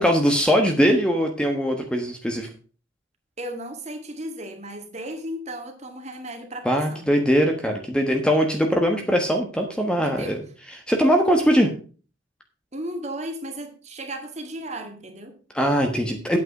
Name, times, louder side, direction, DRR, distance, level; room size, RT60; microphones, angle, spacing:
voice 1, 0.0-2.5 6.6-10.4 10.9-11.7 15.5-16.4, equal, 5° left, 1.3 m, -21 dB
voice 2, 3.4-7.1 10.0-10.3 12.7-15.4, right 1 dB, 35° right, 2.0 m, -35 dB
9.0 x 8.4 x 4.9 m
head